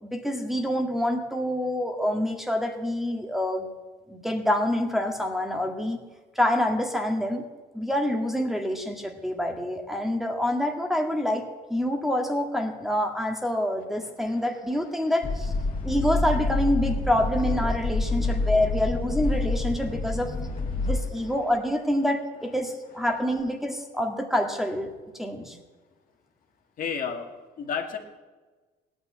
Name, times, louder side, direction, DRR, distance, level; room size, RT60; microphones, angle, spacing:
voice 1, 0.0-3.7 4.1-6.0 6.4-7.4 7.7-15.5 15.8-20.3 20.8-24.9 25.2-25.6, left 1 dB, ahead, 1 dB, 1.8 m, -27 dB
sound 1, 15.2-21.0, left 3 dB, 35° left, 2.4 m, -27 dB
voice 2, 26.8-27.3 27.6-28.0, left 6 dB, 55° left, 3 dB, 2.2 m, -32 dB
17.0 x 9.8 x 7.6 m, 1.3 s
cardioid pair, 110°, 17 cm